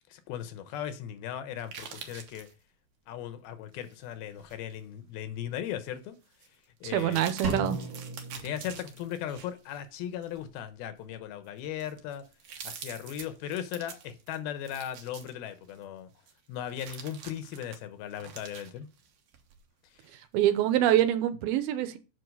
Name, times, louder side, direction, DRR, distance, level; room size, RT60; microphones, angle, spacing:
voice 1, 0.1-2.5 3.1-6.2 6.8-7.2 8.4-12.3 12.6-16.1 16.5-18.9, left 10 dB, 80° left, 2.8 m, -37 dB
sound 1, 1.6-2.5 3.8-4.8 5.3-5.4 6.3-6.5 6.9-9.8 10.2-10.5 11.1-11.2 11.6-15.8 16.3-19.6 20.0-20.1, right 7 dB, 65° right, 1.6 m, -46 dB
voice 2, 6.9-7.8 20.3-22.0, right 11 dB, 85° right, 2.6 m, -25 dB
Drum, 7.4-9.4, right 3 dB, 50° right, 1.4 m, -37 dB
8.0 x 5.5 x 5.3 m
omnidirectional pair, 4.4 m